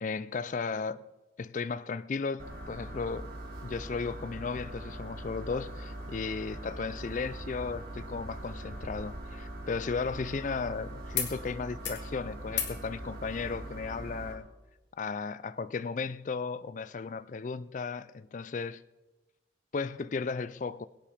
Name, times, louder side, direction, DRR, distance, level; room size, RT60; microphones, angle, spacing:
voice 1, 0.0-1.0 1.4-3.3 3.6-14.5 15.0-18.8 19.7-20.9, left 4 dB, 40° left, 0.4 m, -35 dB
sound 1, 2.4-14.3, right 1 dB, 50° right, 3.3 m, -42 dB
sound 2, 11.1-11.3 11.6-12.1 12.5-12.8 14.1-14.2, left 9 dB, 70° left, 2.3 m, -38 dB
22.5 x 8.6 x 5.1 m
head